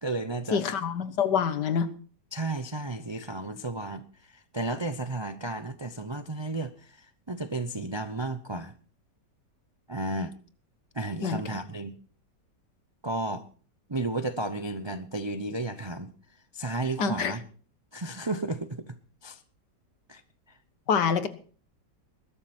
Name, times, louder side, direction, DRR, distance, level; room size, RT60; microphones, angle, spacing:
voice 1, 0.0-0.6 2.3-8.7 9.9-10.3 10.9-11.9 13.0-13.4 13.9-16.1 16.5-17.4 17.9-19.4 20.1-20.2 20.5-20.6, right 2 dB, 35° right, 11 dB, 0.4 m, -33 dB
voice 2, 0.5-1.9 11.2-11.4 17.0-17.3 20.9-21.3, left 6 dB, 70° left, 12 dB, 1.8 m, -26 dB
20.5 x 12.5 x 4.3 m, 0.41 s
omnidirectional pair, 1.9 m